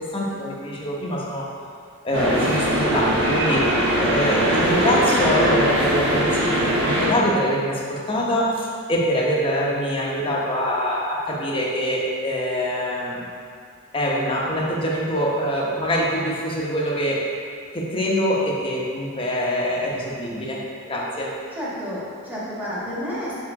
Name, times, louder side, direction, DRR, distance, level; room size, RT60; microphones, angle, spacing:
voice 1, 0.0-1.5 2.0-3.7 4.0-13.2 13.9-17.2 17.7-20.6 20.9-21.3, equal, 25° left, -4 dB, 1.1 m, -24 dB
sound 1, 2.1-7.1, equal, 55° right, 1.2 m, -21 dB
voice 2, 21.6-23.4, equal, 10° right, -8 dB, 1.6 m, -30 dB
6.0 x 4.9 x 4.8 m, 2.3 s
head